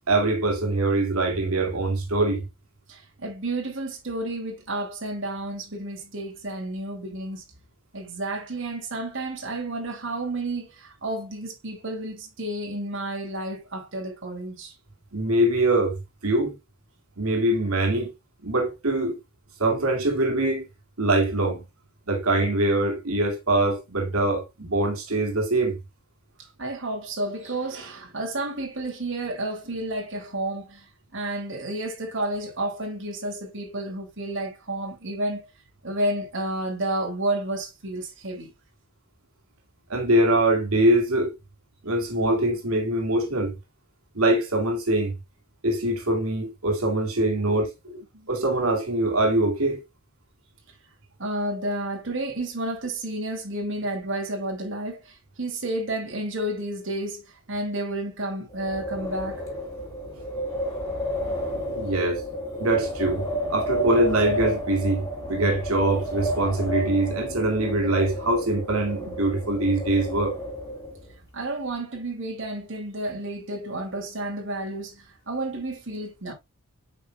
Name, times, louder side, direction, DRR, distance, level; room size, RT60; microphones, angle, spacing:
voice 1, 0.1-2.5 15.1-16.5 17.2-18.1 18.4-19.2 19.6-20.6 21.0-21.6 22.1-25.8 39.9-41.3 41.8-43.5 44.1-45.1 45.6-47.7 48.3-49.8 61.5-62.3 62.6-70.4, right 1 dB, 85° right, 2.3 m, -23 dB
voice 2, 2.9-7.4 7.9-14.8 26.6-35.5 35.8-38.5 47.4-47.5 47.8-48.3 51.2-59.5 71.3-76.3, right 1 dB, 60° right, 2.5 m, -31 dB
Wind, 58.5-71.1, equal, 15° left, 3.2 m, -31 dB
8.5 x 5.5 x 2.3 m
head